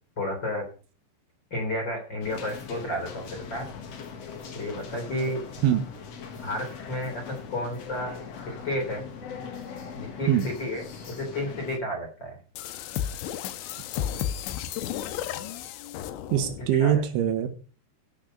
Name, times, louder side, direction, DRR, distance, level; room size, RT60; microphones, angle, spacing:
voice 1, 0.2-0.6 1.5-3.7 4.5-5.4 6.4-8.2 8.5-9.1 9.9-12.4 16.8-17.0, left 1 dB, 25° left, 1 dB, 3.6 m, -32 dB
sound 1, 2.2-11.8, left 6 dB, 65° left, 1.6 m, -41 dB
sound 2, 12.6-16.7, left 10 dB, 85° left, 3.2 m, -33 dB
voice 2, 16.3-17.6, right 10 dB, 85° right, 8 dB, 3.8 m, -23 dB
14.5 x 6.4 x 6.5 m, 0.39 s
omnidirectional pair, 5.3 m